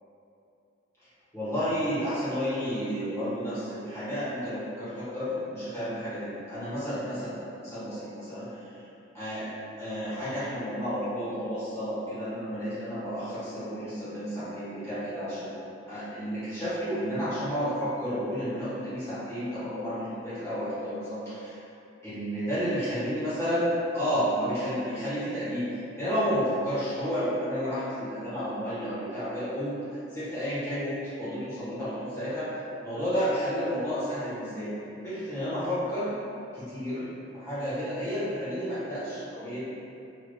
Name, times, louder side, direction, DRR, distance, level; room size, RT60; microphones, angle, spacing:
voice 1, 1.3-8.8 9.1-9.5 9.8-15.5 15.9-21.6 22.0-25.6 26.0-32.5 32.8-34.7 35.0-36.1 36.7-37.0 37.3-39.7, equal, 15° left, -15 dB, 1.3 m, -31 dB
3.3 x 2.6 x 2.7 m, 2.7 s
head